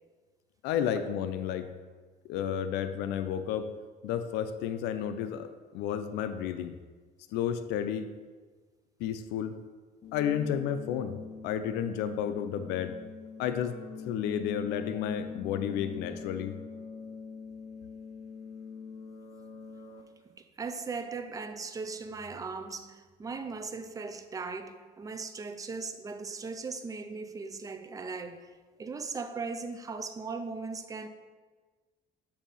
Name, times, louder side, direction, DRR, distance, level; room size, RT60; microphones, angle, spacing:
voice 1, 0.6-1.7 2.2-3.7 4.0-6.8 7.3-8.1 9.0-9.5 10.1-13.0 13.4-13.8 14.1-16.5, left 9 dB, 90° left, 0.4 m, -32 dB
sound 1, 10.0-20.0, left 5 dB, 30° left, 0.7 m, -43 dB
voice 2, 20.3-28.5 28.8-31.1, right 4 dB, 20° right, 0.4 m, -38 dB
7.1 x 2.7 x 5.4 m
cardioid pair, 110°, 17 cm